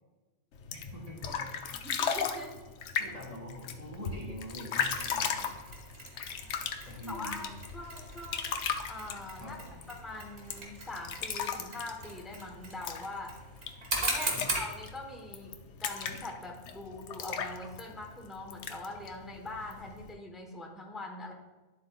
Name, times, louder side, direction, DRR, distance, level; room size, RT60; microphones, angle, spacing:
sound 1, 0.5-20.1, left 6 dB, 75° left, 1.0 m, -38 dB
voice 1, 0.7-1.9 3.0-5.5 6.8-7.5 9.4-9.8 14.3-14.5, left 1 dB, 30° right, -2 dB, 1.6 m, -44 dB
voice 2, 1.8-2.5 7.1-8.6 8.9-9.6 9.9-13.3 14.0-21.3, left 2 dB, ahead, 1 dB, 0.9 m, -43 dB
Mechanisms, 5.0-14.7, right 2 dB, 65° right, 1.8 m, -39 dB
11.0 x 7.5 x 2.3 m, 1.2 s
omnidirectional pair, 1.2 m